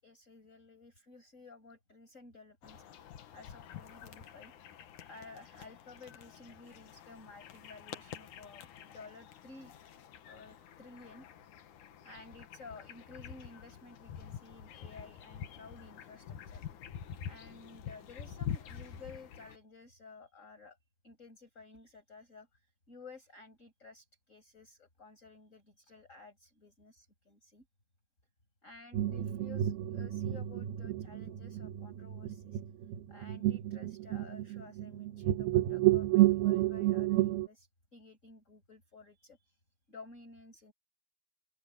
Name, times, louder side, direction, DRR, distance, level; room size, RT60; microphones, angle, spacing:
voice 1, 0.0-4.7 5.0-9.7 10.3-11.3 12.0-16.6 17.3-20.8 21.0-27.6 28.6-32.6 33.1-39.6 39.9-40.7, left 3 dB, 15° left, 8.0 m, -54 dB
sound 1, 2.6-19.6, left 9 dB, 75° left, 1.8 m, -47 dB
sound 2, 28.9-37.5, right 15 dB, 70° right, 2.5 m, -30 dB
open air
omnidirectional pair, 5.8 m